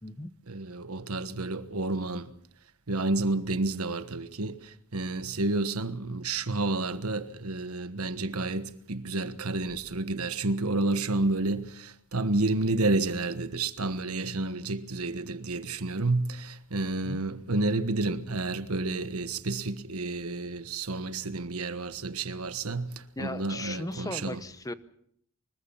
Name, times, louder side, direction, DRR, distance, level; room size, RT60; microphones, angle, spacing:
voice 1, 0.5-2.3 2.9-24.4, right 2 dB, 80° right, 1.4 m, -30 dB
voice 2, 23.2-24.7, left 2 dB, 15° left, 1.0 m, -37 dB
24.5 x 22.0 x 5.7 m
head